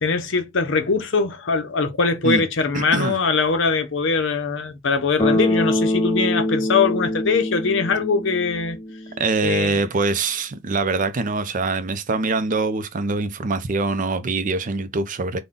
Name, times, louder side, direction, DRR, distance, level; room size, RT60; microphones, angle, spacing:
voice 1, 0.0-8.8 9.4-9.8, left 4 dB, 65° left, 0.7 m, -22 dB
voice 2, 2.7-3.2 9.2-15.4, right 3 dB, 40° right, 0.5 m, -23 dB
Bass guitar, 5.2-9.2, left 1 dB, 20° left, 1.0 m, -24 dB
3.9 x 2.2 x 3.6 m
head